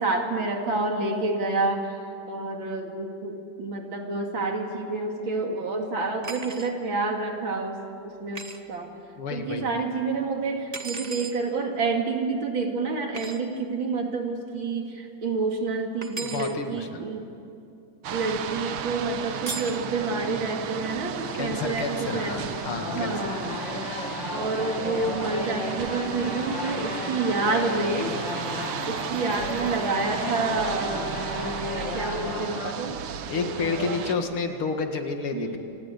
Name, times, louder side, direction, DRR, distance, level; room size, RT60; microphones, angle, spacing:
voice 1, 0.0-2.0 2.3-8.9 9.3-17.2 18.1-22.5 22.9-23.7 24.3-28.2 28.8-33.0 33.3-33.9 35.3-35.6, right 3 dB, 65° right, 3 dB, 3.1 m, -29 dB
sound 1, 6.2-6.7 8.3-8.6 10.7-11.4 13.1-13.4 16.0-16.5 19.5-19.8, right 3 dB, 25° right, 0.9 m, -36 dB
voice 2, 9.2-9.7 16.2-17.1 21.4-23.2 33.3-35.6, left 4 dB, 75° left, 5 dB, 2.7 m, -30 dB
sound 2, 18.0-34.2, right 8 dB, 90° right, 2.0 m, -34 dB
sound 3, 21.2-32.7, left 4 dB, 55° left, 2.4 m, -35 dB
28.0 x 19.5 x 8.2 m, 2.7 s
omnidirectional pair, 2.4 m